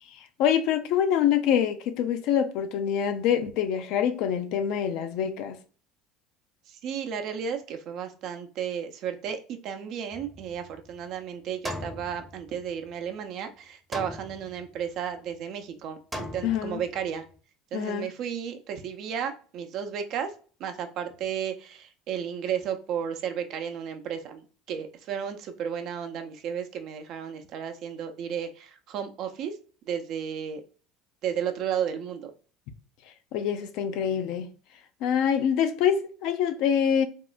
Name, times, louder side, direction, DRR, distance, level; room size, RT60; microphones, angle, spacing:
voice 1, 0.2-5.6 16.4-16.8 17.7-18.1 33.3-34.5 35.0-37.1, left 8 dB, 65° left, 0.5 m, -25 dB
voice 2, 6.7-17.2 17.7-20.3 20.6-29.5 29.9-30.6 31.2-32.3, right 8 dB, 60° right, 0.5 m, -33 dB
sound 1, 10.1-11.0 11.6-12.9 13.9-14.9 16.1-17.1, left 1 dB, 5° right, 0.7 m, -39 dB
3.6 x 2.1 x 2.3 m
hypercardioid pair, 85°, 0 cm